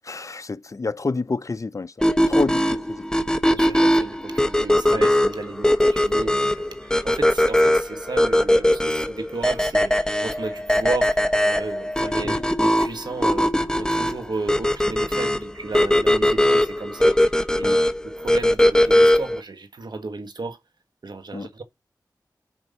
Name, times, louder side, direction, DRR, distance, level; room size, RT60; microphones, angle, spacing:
voice 1, 0.0-3.0 4.9-5.1 12.2-12.4 17.6-17.8 21.3-21.5, left 3 dB, 45° left, 0.6 m, -29 dB
sound 1, 2.0-19.4, left 1 dB, 10° left, 0.9 m, -20 dB
voice 2, 3.4-11.2 11.4-17.2 17.5-17.8 18.0-20.6 21.0-21.6, right 3 dB, 75° right, 1.5 m, -34 dB
6.2 x 5.3 x 5.4 m
cardioid pair, 45°, 7 cm